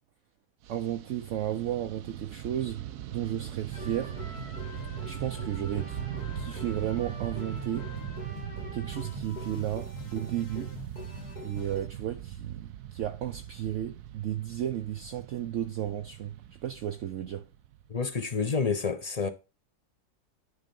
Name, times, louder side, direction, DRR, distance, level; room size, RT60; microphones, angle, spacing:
Fixed-wing aircraft airplane, 0.6-18.1, right 11 dB, 80° right, 1.3 m, -40 dB
voice 1, 0.7-2.8 3.1-4.2 5.0-6.0 6.3-7.9 8.7-10.7 11.4-16.4 16.6-17.5, right 11 dB, 60° right, 0.9 m, -33 dB
sound 1, 3.7-11.9, left 4 dB, 85° left, 2.4 m, -44 dB
voice 2, 17.9-19.3, left 5 dB, 30° left, 0.8 m, -29 dB
10.0 x 4.2 x 5.3 m
omnidirectional pair, 1.6 m